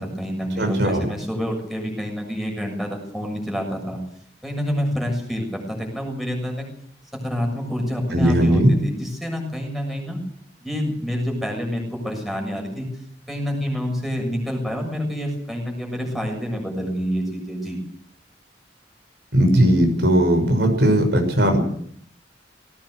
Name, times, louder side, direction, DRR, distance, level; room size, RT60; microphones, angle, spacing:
voice 1, 0.0-4.0 4.4-6.7 7.1-10.2 10.6-12.9 13.3-17.8, equal, ahead, 1 dB, 6.8 m, -27 dB
voice 2, 0.6-1.1 8.1-8.7 19.3-21.6, right 1 dB, 70° right, 4 dB, 6.1 m, -18 dB
19.0 x 18.0 x 8.1 m, 0.64 s
head